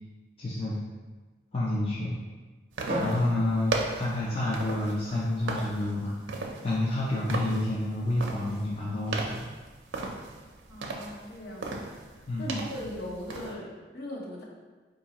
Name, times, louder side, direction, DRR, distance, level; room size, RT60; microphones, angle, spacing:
voice 1, 0.4-0.8 1.5-2.1 3.0-6.2 6.6-9.4 12.3-12.5, left 1 dB, 30° left, -6 dB, 0.5 m, -29 dB
sound 1, 2.7-13.5, right 3 dB, 90° right, 0.5 m, -37 dB
Drum, 2.9-5.2, equal, 40° right, 0.6 m, -36 dB
voice 2, 10.7-11.9 12.1-14.4, left 1 dB, 55° left, -3 dB, 0.8 m, -39 dB
4.7 x 2.6 x 2.9 m, 1.3 s
head